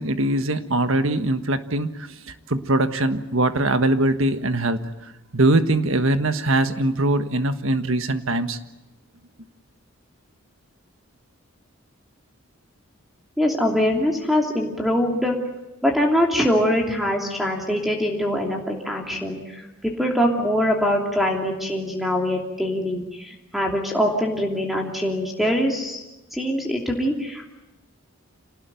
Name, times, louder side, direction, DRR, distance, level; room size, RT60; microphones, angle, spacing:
voice 1, 0.0-4.8 5.3-8.6, right 2 dB, 65° right, 10 dB, 1.5 m, -22 dB
voice 2, 13.4-15.3 15.8-26.0 26.3-27.6, equal, ahead, 1 dB, 2.9 m, -23 dB
26.5 x 19.0 x 9.3 m, 1.0 s
head